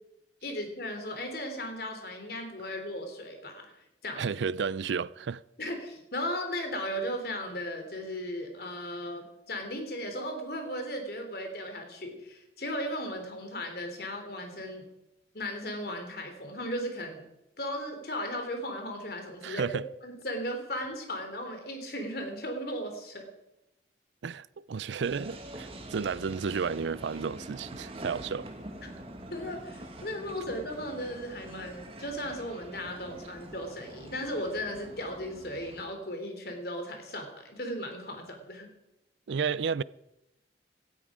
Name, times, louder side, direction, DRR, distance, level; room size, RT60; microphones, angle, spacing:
voice 1, 0.4-4.3 5.6-14.9 15.3-17.2 17.6-23.3 28.8-28.9 29.3-38.7, equal, 55° left, 3.2 m, -36 dB
voice 2, 4.2-5.4 19.4-19.8 24.2-28.5 39.3-39.8, right 6 dB, 80° right, 0.4 m, -32 dB
sound 1, 25.0-35.9, right 1 dB, 30° right, 1.9 m, -45 dB
17.5 x 13.0 x 5.0 m
head